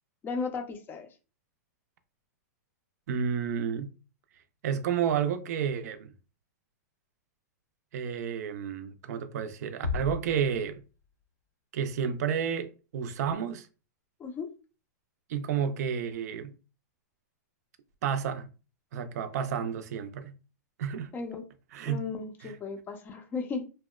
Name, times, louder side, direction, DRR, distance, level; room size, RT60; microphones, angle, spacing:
voice 1, 0.2-1.1 14.2-14.5 21.1-21.4 21.8-23.6, left 4 dB, 20° left, 0.5 m, -35 dB
voice 2, 3.1-3.9 4.6-6.1 7.9-10.8 11.7-13.7 15.3-16.5 18.0-18.5 18.9-20.3 20.8-21.1 21.7-22.1 22.4-22.6, right 7 dB, 65° right, 0.4 m, -31 dB
Bass drum, 9.8-11.2, left 5 dB, 80° left, 0.6 m, -36 dB
2.8 x 2.0 x 2.2 m
hypercardioid pair, 130°, 9 cm